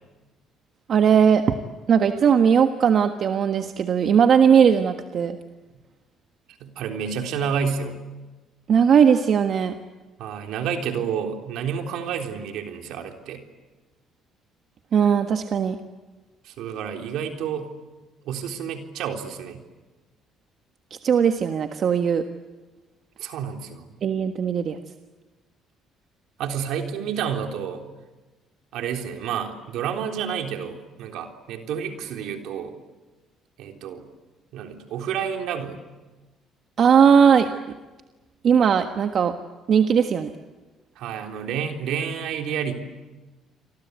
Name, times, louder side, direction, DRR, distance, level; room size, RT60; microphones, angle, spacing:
voice 1, 0.9-1.4 1.9-5.4 8.7-9.7 14.9-15.8 21.0-22.2 24.0-24.8 36.8-37.5 38.4-39.3 39.7-40.3, right 7 dB, 55° right, 6 dB, 1.4 m, -18 dB
voice 2, 6.6-8.0 10.2-13.4 16.4-17.7 18.3-19.6 23.2-23.9 26.4-27.8 28.7-32.7 33.6-34.0 34.5-35.8 41.0-42.7, right 7 dB, 75° right, 3 dB, 3.6 m, -29 dB
29.5 x 24.0 x 8.3 m, 1.2 s
supercardioid pair, 80°, 0 cm